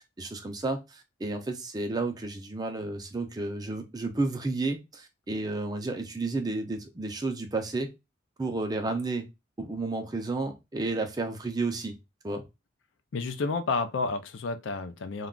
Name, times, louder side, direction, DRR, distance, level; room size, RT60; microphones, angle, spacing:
voice 1, 0.2-7.9 8.4-9.3 9.6-12.0 12.2-12.4, right 3 dB, 20° right, 0.4 m, -32 dB
voice 2, 13.1-15.3, left 4 dB, 70° left, 0.4 m, -30 dB
2.3 x 2.3 x 3.6 m
head